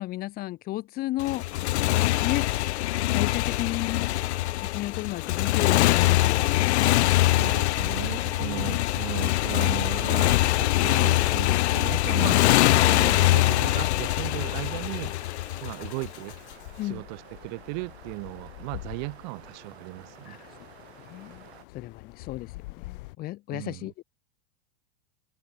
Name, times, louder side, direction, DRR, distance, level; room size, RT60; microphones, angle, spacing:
voice 1, 0.0-1.5 2.2-2.5 3.1-4.1 4.6-6.7 8.4-8.7 12.2-12.5 14.3-14.5 16.8-17.0 20.3-20.5 21.0-21.5 21.7-23.9, left 17 dB, 25° left, 1.1 m, -33 dB
Motorcycle, 1.2-16.3, left 17 dB, 75° left, 0.6 m, -23 dB
sound 1, 5.4-23.1, left 21 dB, 50° left, 1.1 m, -43 dB
sound 2, 6.2-21.6, right 15 dB, 70° right, 2.8 m, -52 dB
voice 2, 7.2-12.4 12.8-15.2 15.6-16.3 16.8-20.4 23.5-23.9, right 34 dB, 40° right, 1.2 m, -37 dB
supercardioid pair, 155°, 33 cm